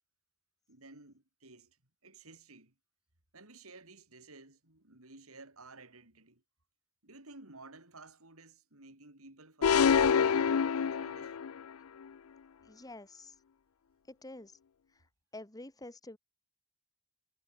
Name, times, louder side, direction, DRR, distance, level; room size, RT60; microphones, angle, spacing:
voice 1, 0.7-1.8 2.0-2.7 3.3-6.4 7.0-10.3 10.7-11.4, right 3 dB, 75° right, 5.4 m, -54 dB
sound 1, 9.6-11.6, left 6 dB, 80° left, 0.5 m, -26 dB
voice 2, 12.6-13.3 14.1-14.6 15.3-16.2, left 2 dB, 15° left, 2.0 m, -48 dB
head